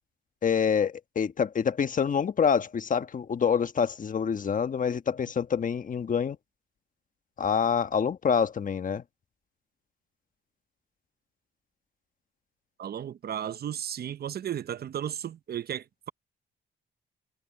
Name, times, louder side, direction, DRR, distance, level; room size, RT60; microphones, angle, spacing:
voice 1, 0.4-6.4 7.4-9.0, left 7 dB, 40° left, 1.3 m, -26 dB
voice 2, 12.8-16.1, right 9 dB, 50° right, 0.8 m, -34 dB
cardioid pair, 90°, 20 cm